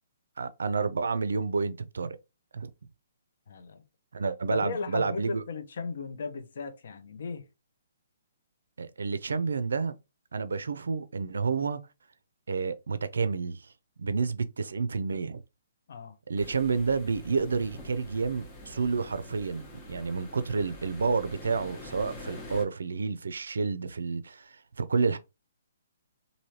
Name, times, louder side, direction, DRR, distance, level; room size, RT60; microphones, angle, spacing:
voice 1, 0.4-2.2 2.5-2.7 4.1-5.4 8.8-9.9 10.3-11.8 12.5-13.7 14.0-15.4 16.3-25.2, right 4 dB, 80° right, 0.4 m, -30 dB
voice 2, 3.5-3.8 4.5-7.4 15.9-16.1, left 4 dB, 65° left, 0.7 m, -36 dB
sound 1, 16.4-22.6, left 1 dB, 25° left, 0.9 m, -46 dB
3.1 x 2.6 x 2.8 m
hypercardioid pair, 145°, 0 cm